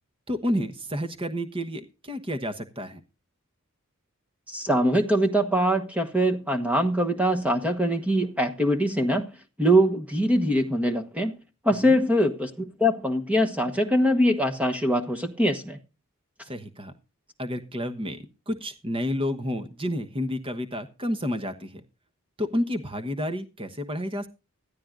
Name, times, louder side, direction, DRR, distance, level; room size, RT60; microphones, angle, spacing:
voice 1, 0.3-3.0 11.8-12.0 16.4-16.9 17.4-21.8 22.4-24.3, equal, 25° right, 1.2 m, -30 dB
voice 2, 4.5-9.3 9.6-11.4 11.6-15.8, equal, 5° right, 1.3 m, -23 dB
15.0 x 13.5 x 2.6 m
head